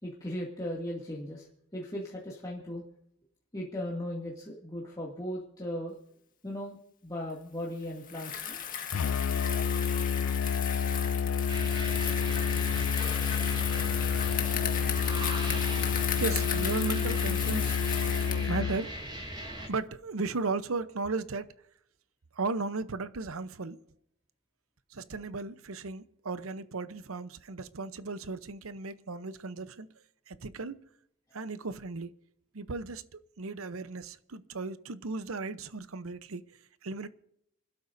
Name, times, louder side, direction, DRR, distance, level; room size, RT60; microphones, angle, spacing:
voice 1, 0.0-1.5 1.7-2.8 3.5-5.9 6.4-8.6, left 1 dB, 20° left, 2.3 m, -37 dB
Bicycle, 8.0-18.5, left 9 dB, 40° left, 1.8 m, -35 dB
Musical instrument, 8.9-18.9, left 6 dB, 80° left, 0.5 m, -29 dB
sound 1, 11.5-19.7, right 1 dB, 20° right, 6.2 m, -40 dB
voice 2, 16.1-17.8 18.5-19.0 19.7-21.5 22.3-23.8 24.9-29.9 30.3-30.8 31.3-32.1 32.5-36.4 36.8-37.1, right 3 dB, 85° right, 0.8 m, -35 dB
28.0 x 12.5 x 2.6 m
head